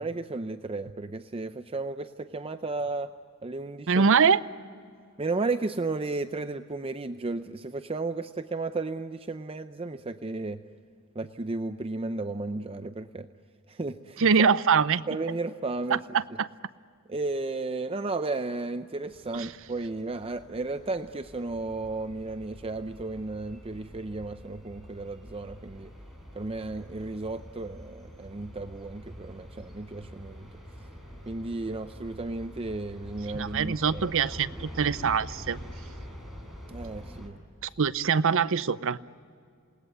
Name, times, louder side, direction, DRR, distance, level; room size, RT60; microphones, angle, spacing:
voice 1, 0.0-3.1 3.4-4.1 5.2-10.6 11.2-13.3 13.7-14.5 15.1-16.0 17.1-25.9 26.3-30.5 31.3-34.1 36.7-37.4, right 3 dB, 25° right, 9 dB, 0.6 m, -34 dB
voice 2, 3.9-4.4 14.2-15.0 15.9-16.5 19.3-19.5 33.3-35.6 37.6-39.0, right 6 dB, 65° right, 15 dB, 0.6 m, -24 dB
sound 1, 19.1-37.3, equal, ahead, 4.9 m, -46 dB
28.0 x 19.0 x 9.6 m, 2.4 s
head